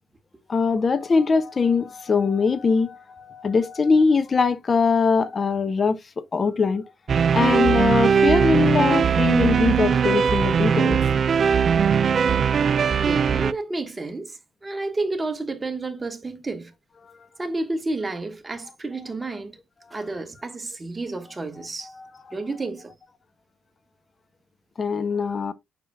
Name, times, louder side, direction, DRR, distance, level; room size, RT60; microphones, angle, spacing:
voice 1, 0.5-6.8 7.3-11.0 21.8-22.1 24.8-25.5, left 5 dB, 40° left, 0.6 m, -22 dB
sound 1, 7.1-13.5, right 7 dB, 50° right, 0.4 m, -20 dB
voice 2, 13.0-16.7 17.4-19.6 19.9-21.9 22.3-22.9, right 2 dB, 25° right, 1.3 m, -30 dB
7.0 x 6.0 x 2.2 m
cardioid pair, 90°, 0 cm